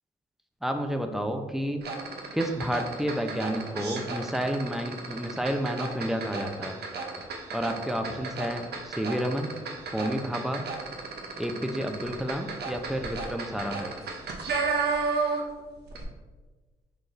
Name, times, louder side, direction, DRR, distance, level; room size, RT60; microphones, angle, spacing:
voice 1, 0.6-1.8 2.3-6.8 7.5-9.5 9.9-10.7 11.4-14.0, equal, ahead, 5 dB, 0.5 m, -30 dB
sound 1, 1.8-15.6 15.9-16.0, right 4 dB, 65° right, 0.7 m, -33 dB
4.7 x 3.7 x 2.6 m, 1.3 s
supercardioid pair, 50°, 18 cm